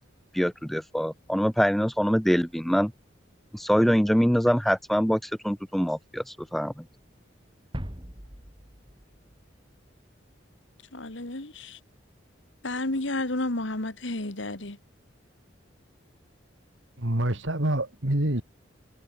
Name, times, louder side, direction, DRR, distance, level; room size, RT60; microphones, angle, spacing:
voice 1, 0.3-2.9 3.5-6.7, equal, ahead, 0.5 m, -24 dB
sound 1, 7.7-10.2, equal, 25° right, 3.2 m, -41 dB
voice 2, 10.9-11.8 12.6-14.8, left 2 dB, 75° left, 2.2 m, -31 dB
voice 3, 17.0-18.4, right 1 dB, 75° right, 2.7 m, -26 dB
head